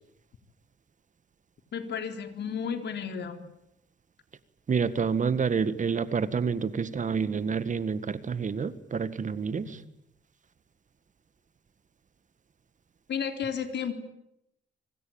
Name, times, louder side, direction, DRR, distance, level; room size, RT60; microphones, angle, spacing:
voice 1, 1.7-3.4 13.1-13.9, left 7 dB, 60° left, 7 dB, 4.0 m, -32 dB
voice 2, 4.7-9.8, right 6 dB, 40° right, 14 dB, 1.7 m, -28 dB
25.0 x 24.5 x 8.9 m, 0.81 s
cardioid pair, 90°, 20 cm